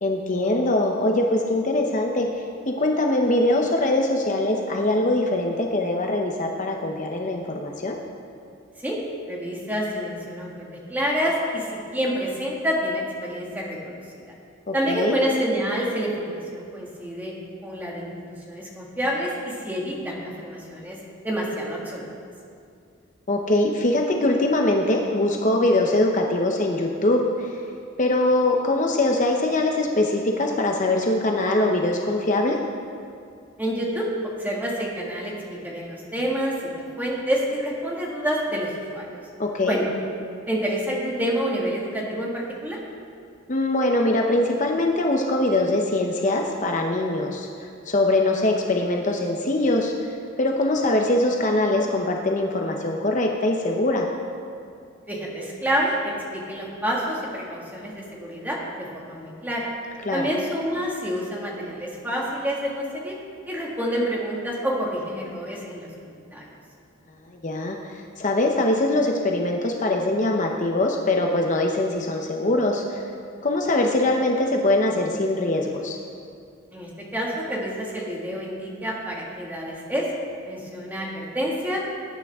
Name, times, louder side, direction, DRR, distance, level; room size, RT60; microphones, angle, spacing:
voice 1, 0.0-8.0 14.7-15.2 23.3-27.6 28.0-32.6 39.4-39.8 43.5-50.1 50.4-54.1 60.0-60.3 67.4-73.1 73.4-76.0, left 2 dB, 40° left, 1 dB, 0.8 m, -22 dB
voice 2, 9.3-14.3 14.7-17.3 17.6-18.1 18.5-21.0 21.2-22.1 33.6-34.1 34.4-36.7 37.0-39.2 39.7-39.8 40.5-42.8 55.1-59.7 60.1-63.2 63.5-65.9 66.3-66.5 76.7-80.1 80.5-81.8, equal, 10° right, -4 dB, 2.0 m, -28 dB
19.0 x 9.6 x 3.6 m, 2.4 s
head